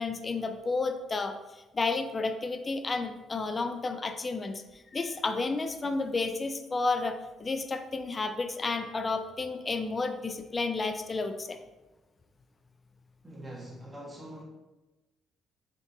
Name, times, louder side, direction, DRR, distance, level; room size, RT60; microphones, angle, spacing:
voice 1, 0.0-11.6, left 3 dB, 25° left, 7 dB, 0.4 m, -31 dB
voice 2, 13.2-14.4, right 1 dB, 15° right, -3 dB, 1.7 m, -43 dB
7.3 x 4.5 x 3.0 m, 1.1 s
cardioid pair, 120°, 0 cm